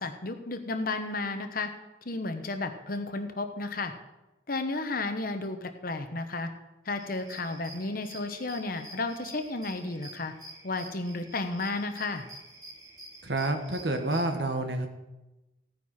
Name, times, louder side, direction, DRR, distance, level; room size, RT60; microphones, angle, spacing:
voice 1, 0.0-1.7 2.1-3.9 4.5-6.5 6.9-10.3 10.6-12.2, left 3 dB, 50° left, 7 dB, 1.1 m, -33 dB
sound 1, 7.0-14.2, right 1 dB, 20° right, 2.3 m, -48 dB
voice 2, 13.2-14.9, right 2 dB, 70° right, 6 dB, 1.5 m, -29 dB
15.5 x 9.6 x 4.4 m, 1.0 s
head